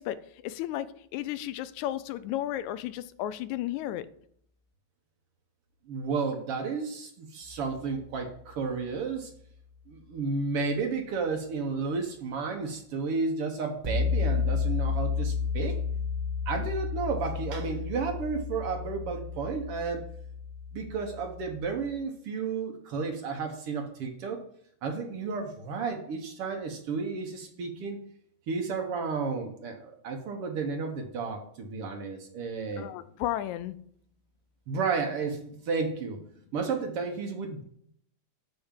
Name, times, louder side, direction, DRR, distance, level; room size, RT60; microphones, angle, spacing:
voice 1, 0.0-4.1 32.8-33.8, left 13 dB, 85° left, 14 dB, 1.9 m, -33 dB
voice 2, 5.9-9.3 9.9-15.8 16.5-20.0 20.7-24.4 24.8-28.0 28.5-32.9 34.7-36.2 36.5-37.6, right 4 dB, 60° right, 3 dB, 1.7 m, -32 dB
sound 1, 7.5-7.9 13.8-21.9, left 5 dB, 40° right, 0.6 m, -32 dB
10.5 x 3.5 x 7.2 m, 0.66 s
omnidirectional pair, 3.3 m